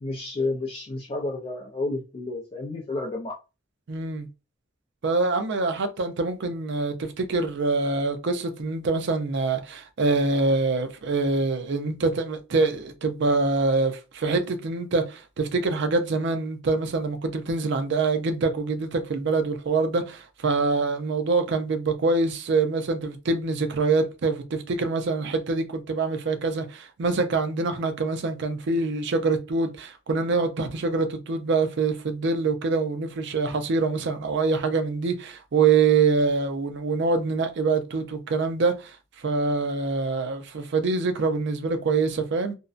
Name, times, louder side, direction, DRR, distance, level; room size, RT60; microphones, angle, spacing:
voice 1, 0.0-3.4, left 2 dB, 30° left, 0.4 m, -31 dB
voice 2, 3.9-4.3 5.0-42.6, right 3 dB, 65° right, 0.5 m, -25 dB
2.5 x 2.1 x 2.4 m
head